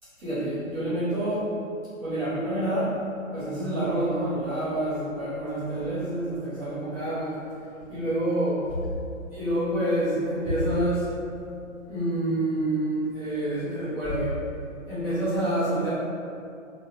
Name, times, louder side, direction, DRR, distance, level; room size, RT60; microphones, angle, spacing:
voice 1, 0.2-1.5 2.0-3.0 3.3-7.5 7.9-8.8 9.3-11.1 11.9-14.4 14.9-15.9, right 1 dB, 5° right, -19 dB, 0.5 m, -27 dB
3.4 x 2.9 x 2.7 m, 2.5 s
figure-of-eight pair, 130°, 41 cm